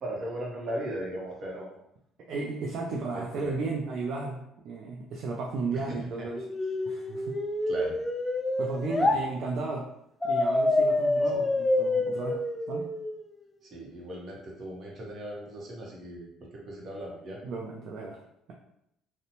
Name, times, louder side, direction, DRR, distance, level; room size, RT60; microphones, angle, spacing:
voice 1, 0.0-1.7 3.1-3.6 5.7-6.3 7.7-8.0 9.0-9.1 11.3-11.4 13.6-17.4, right 1 dB, 45° right, -2 dB, 0.9 m, -38 dB
voice 2, 2.3-6.4 6.9-7.4 8.6-9.9 10.2-12.4 12.7-12.9 17.4-18.2, right 3 dB, 60° right, -1 dB, 0.4 m, -34 dB
sound 1, 6.4-9.2 10.2-13.2, left 2 dB, 15° left, 0.3 m, -27 dB
2.6 x 2.1 x 2.9 m, 0.79 s
cardioid pair, 95°, 0 cm